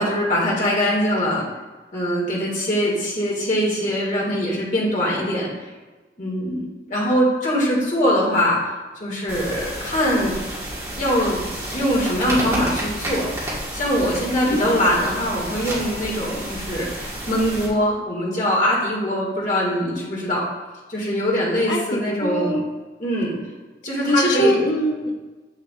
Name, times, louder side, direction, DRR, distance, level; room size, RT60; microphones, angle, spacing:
voice 1, 0.0-1.4 1.9-5.5 6.2-8.7 9.0-10.3 11.0-11.4 11.7-13.3 13.7-20.4 20.9-22.6 23.0-23.4 23.8-24.6, equal, 45° left, -4 dB, 2.2 m, -22 dB
sound 1, 9.3-17.7, right 1 dB, 15° right, 1.7 m, -30 dB
voice 2, 14.4-14.8 21.7-22.6 24.1-25.1, equal, 85° left, -1 dB, 1.1 m, -22 dB
7.6 x 6.8 x 2.5 m, 1.2 s
head